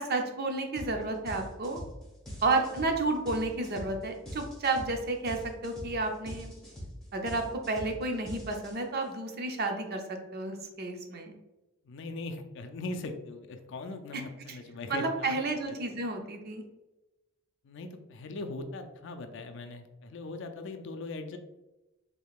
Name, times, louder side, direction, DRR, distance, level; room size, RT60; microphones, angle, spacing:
voice 1, 0.0-1.8 2.4-6.5 7.1-11.3 14.1-14.2 14.5-14.6 14.9-16.6, right 3 dB, 50° right, 4 dB, 0.5 m, -31 dB
sound 1, 0.8-1.0 1.3-9.0, equal, 5° left, 1.1 m, -43 dB
voice 2, 11.8-15.4 15.7-16.0 17.6-21.4, left 2 dB, 60° left, 6 dB, 0.4 m, -40 dB
3.7 x 3.5 x 2.4 m, 1.0 s
head